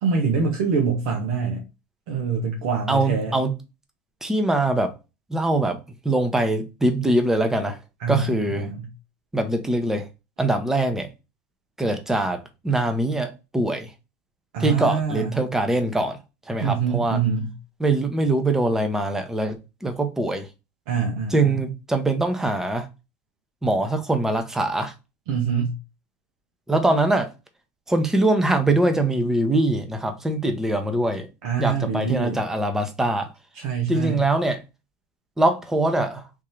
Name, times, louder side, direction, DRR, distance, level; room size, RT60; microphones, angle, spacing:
voice 1, 0.0-1.6 2.1-3.4 8.0-8.9 14.5-15.3 16.6-17.5 20.9-21.5 25.3-25.7 31.4-32.4 33.6-34.2, right 5 dB, 75° right, 0.8 m, -25 dB
voice 2, 2.9-3.5 4.2-4.9 5.3-7.8 8.1-8.7 9.3-10.1 10.4-11.1 11.8-13.9 14.6-16.2 16.5-17.2 17.8-20.5 21.3-22.9 23.6-24.9 26.7-27.3 27.9-31.3 31.6-33.3 33.9-34.6 35.4-36.2, right 2 dB, 10° right, 0.7 m, -23 dB
3.6 x 2.7 x 3.1 m
supercardioid pair, 115°, 6 cm